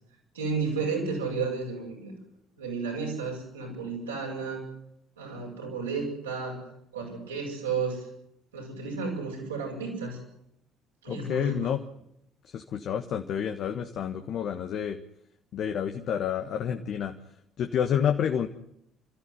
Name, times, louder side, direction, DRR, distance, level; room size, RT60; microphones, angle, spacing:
voice 1, 0.3-2.1 2.6-4.7 5.2-6.6 6.9-8.0 8.5-10.2 11.0-11.7 16.6-16.8, right 4 dB, 85° right, -2 dB, 8.0 m, -32 dB
voice 2, 11.1-11.8 12.5-15.0 15.5-17.1 17.6-18.5, left 8 dB, 55° left, 5 dB, 1.5 m, -29 dB
29.5 x 14.0 x 9.8 m, 0.77 s
figure-of-eight pair, 55°, 0 cm